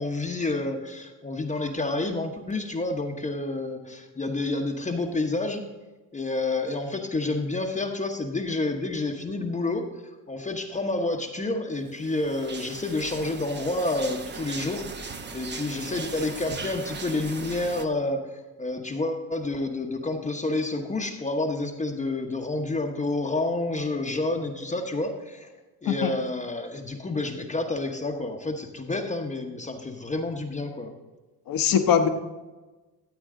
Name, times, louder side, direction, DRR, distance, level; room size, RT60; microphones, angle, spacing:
voice 1, 0.0-5.7 6.1-14.9 15.3-25.5 25.8-30.9, left 2 dB, 20° left, 3 dB, 1.0 m, -29 dB
sound 1, 12.0-17.9, right 4 dB, 25° right, 0.9 m, -38 dB
voice 2, 25.9-26.2 31.5-32.1, left 8 dB, 55° left, 6 dB, 1.2 m, -22 dB
13.5 x 8.2 x 3.8 m, 1.2 s
cardioid pair, 105°, 40 cm